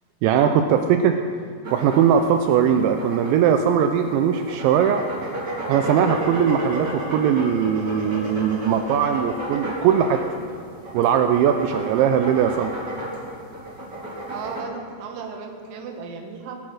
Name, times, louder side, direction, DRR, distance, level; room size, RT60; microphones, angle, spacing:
voice 1, 0.2-1.2 1.7-5.0 5.7-10.2 10.9-12.7, right 8 dB, 85° right, 6 dB, 2.8 m, -20 dB
sound 1, 1.6-14.6, right 1 dB, 30° right, 2.5 m, -33 dB
voice 2, 14.3-16.5, right 5 dB, 65° right, 3 dB, 2.6 m, -35 dB
19.0 x 7.3 x 6.2 m, 2.2 s
omnidirectional pair, 5.4 m